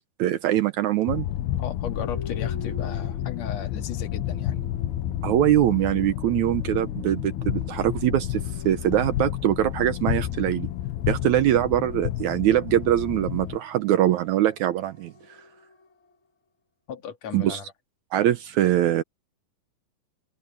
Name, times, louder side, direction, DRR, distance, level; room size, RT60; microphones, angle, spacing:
voice 1, 0.2-1.3 5.2-10.7 11.1-15.1 17.3-17.6 18.1-19.0, right 12 dB, 80° right, 1.6 m, -23 dB
sound 1, 1.1-13.6, left 13 dB, 90° left, 3.1 m, -30 dB
voice 2, 1.6-4.6 16.9-17.7, left 7 dB, 50° left, 3.0 m, -36 dB
sound 2, 1.9-16.1, right 1 dB, 35° left, 1.1 m, -48 dB
omnidirectional pair, 4.4 m